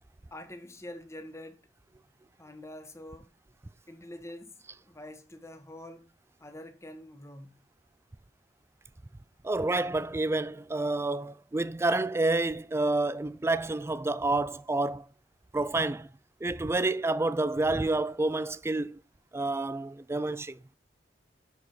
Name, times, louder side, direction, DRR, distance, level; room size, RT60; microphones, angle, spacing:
voice 1, 0.3-1.6 2.4-3.3 3.9-6.1 6.4-7.6, left 1 dB, 15° left, 1.0 m, -46 dB
voice 2, 9.4-15.1 15.5-16.1 16.4-19.0 19.3-20.6, right 2 dB, 15° right, 0.4 m, -29 dB
11.5 x 4.5 x 4.2 m
head